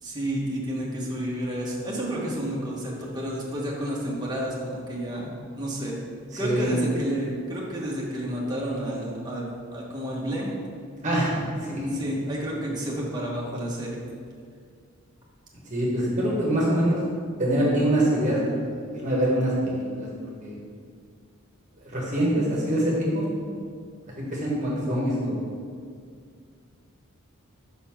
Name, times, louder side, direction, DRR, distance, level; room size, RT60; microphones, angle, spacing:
voice 1, 0.0-6.0 6.4-10.5 11.9-14.0, right 1 dB, 20° right, -4 dB, 1.1 m, -31 dB
voice 2, 6.4-6.8 11.0-12.0 15.7-17.0 17.4-18.7 18.9-20.1 20.4-20.6 21.8-23.3 24.3-25.4, right 1 dB, 35° right, -5 dB, 1.3 m, -24 dB
5.5 x 4.2 x 5.7 m, 2.1 s
head